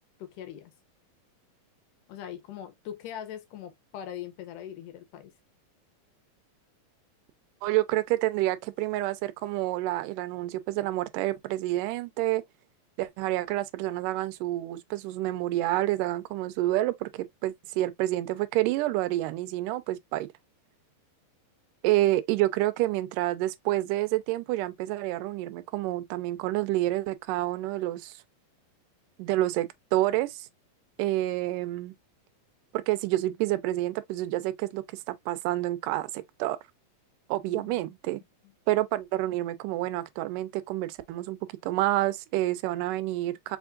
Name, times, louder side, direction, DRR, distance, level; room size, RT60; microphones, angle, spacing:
voice 1, 0.2-0.7 2.1-5.3 37.5-37.9, left 10 dB, 75° left, 2.3 m, -41 dB
voice 2, 7.6-12.4 13.0-20.3 21.8-28.2 29.2-30.5 31.0-31.9 32.7-36.6 37.3-38.2 38.7-43.6, right 16 dB, 80° right, 2.0 m, -28 dB
4.9 x 3.5 x 2.3 m
omnidirectional pair, 4.0 m